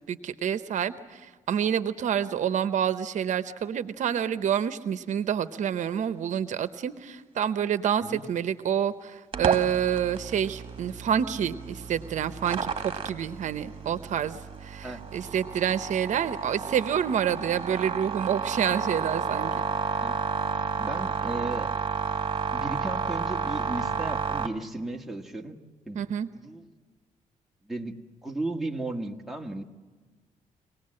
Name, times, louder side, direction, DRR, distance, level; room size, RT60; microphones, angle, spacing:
voice 1, 0.1-19.6 25.9-26.3, right 9 dB, 70° right, 12 dB, 0.8 m, -28 dB
sound 1, 9.3-24.5, right 5 dB, 40° right, 1.7 m, -31 dB
voice 2, 20.6-21.7 22.5-25.6 25.9-26.0 26.3-26.7 27.6-29.6, right 2 dB, ahead, 1 dB, 1.6 m, -35 dB
25.0 x 19.0 x 7.6 m, 1.4 s
cardioid pair, 105°, 13 cm